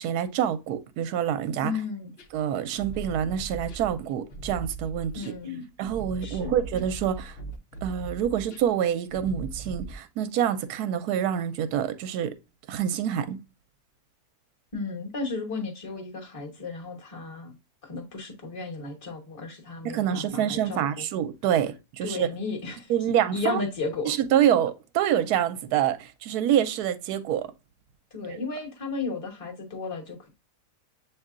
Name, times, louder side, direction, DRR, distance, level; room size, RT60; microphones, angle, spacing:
voice 1, 0.0-1.7 2.3-5.2 5.8-7.4 7.8-12.3 12.7-13.4 19.8-22.3 22.9-23.6 24.0-27.5 28.3-28.4, right 10 dB, 80° right, 1.1 m, -26 dB
voice 2, 1.6-2.1 5.1-5.7 6.2-6.6 14.7-17.6 17.8-21.1 22.0-22.9 23.3-24.1 28.1-30.3, left 4 dB, 25° left, 1.0 m, -34 dB
sound 1, 2.2-10.0, right 2 dB, 55° left, 0.7 m, -39 dB
7.4 x 2.8 x 2.4 m
omnidirectional pair, 1.6 m